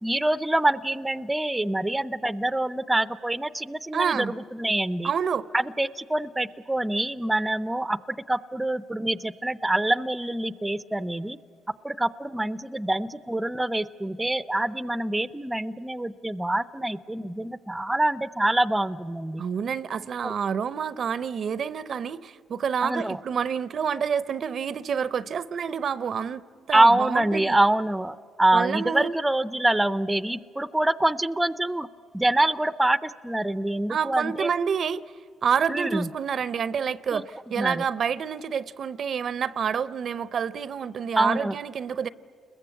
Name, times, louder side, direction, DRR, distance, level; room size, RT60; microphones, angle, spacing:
voice 1, 0.0-5.1 5.5-8.0 8.3-11.4 11.8-19.4 20.2-20.3 22.8-23.2 26.7-31.9 32.1-34.5 35.7-36.1 37.1-37.2 37.6-37.8 41.2-41.5, right 1 dB, 10° right, 15 dB, 0.5 m, -25 dB
voice 2, 3.9-4.3 5.0-5.5 19.4-26.4 26.7-27.6 28.5-29.2 33.9-35.0 35.4-42.1, right 7 dB, 55° right, 17 dB, 0.6 m, -28 dB
30.0 x 21.5 x 8.2 m, 2.3 s
cardioid pair, 90°, 0 cm